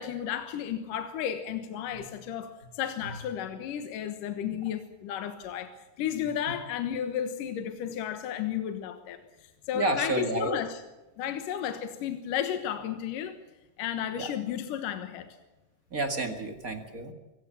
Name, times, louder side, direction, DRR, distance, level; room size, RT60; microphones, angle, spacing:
voice 1, 0.0-10.8 11.2-13.4 13.8-15.3, left 9 dB, 75° left, 8 dB, 2.9 m, -33 dB
voice 2, 9.7-10.6 14.2-14.3 15.9-17.1, right 2 dB, 30° right, 6 dB, 1.9 m, -30 dB
24.5 x 16.5 x 8.6 m, 1.1 s
omnidirectional pair, 3.9 m